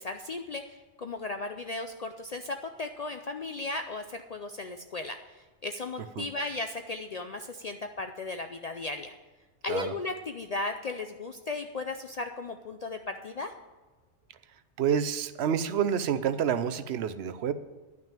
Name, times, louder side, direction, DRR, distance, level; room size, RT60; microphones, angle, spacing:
voice 1, 0.0-9.1 9.6-13.5, left 3 dB, 55° left, 6 dB, 0.4 m, -36 dB
voice 2, 14.8-17.5, right 8 dB, 70° right, 13 dB, 0.8 m, -28 dB
10.5 x 6.0 x 8.9 m, 1.2 s
omnidirectional pair, 1.2 m